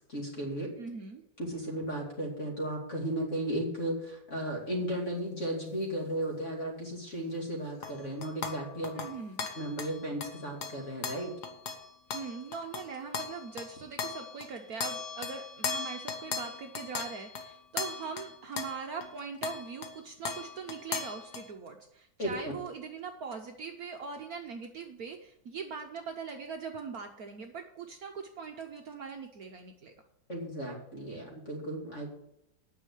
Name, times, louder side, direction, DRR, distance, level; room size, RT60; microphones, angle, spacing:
voice 1, 0.1-0.7 1.4-9.0 9.5-11.3 22.2-22.3 30.3-32.1, right 1 dB, 35° left, -1 dB, 2.9 m, -35 dB
voice 2, 0.8-1.2 8.9-9.5 12.1-29.9, right 5 dB, 60° right, 4 dB, 1.2 m, -41 dB
sound 1, 7.8-14.5 14.8-19.1 19.4-20.0 20.2-21.5, left 5 dB, 60° left, 1.7 m, -38 dB
9.5 x 6.4 x 8.3 m, 0.79 s
omnidirectional pair, 2.1 m